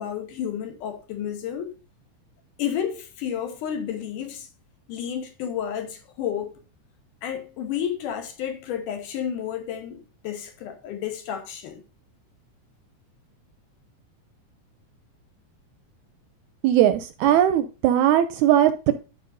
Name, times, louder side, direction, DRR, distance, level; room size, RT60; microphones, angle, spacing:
voice 1, 0.0-1.7 2.6-4.5 4.9-6.6 7.2-11.8, left 9 dB, 80° left, 2.5 m, -31 dB
voice 2, 16.6-18.9, right 11 dB, 80° right, 1.8 m, -19 dB
12.0 x 5.2 x 2.6 m
omnidirectional pair, 3.7 m